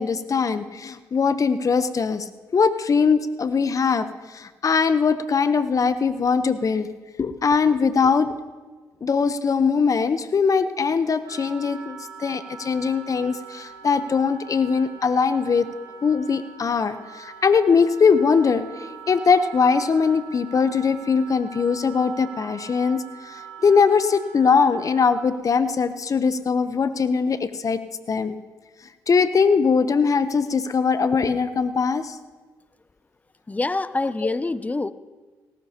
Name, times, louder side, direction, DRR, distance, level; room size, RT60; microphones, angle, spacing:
voice 1, 0.0-2.2 2.5-4.1 4.3-6.9 7.2-8.3 9.0-15.7 16.0-18.6 19.1-27.8 28.1-28.4 29.1-32.2, left 5 dB, 45° left, 12 dB, 0.9 m, -21 dB
Wind instrument woodwind instrument, 11.2-25.3, right 7 dB, 75° right, 1.8 m, -43 dB
voice 2, 33.5-34.9, left 2 dB, 20° left, 16 dB, 0.6 m, -25 dB
18.0 x 15.0 x 2.9 m, 1.4 s
hypercardioid pair, 50°, 8 cm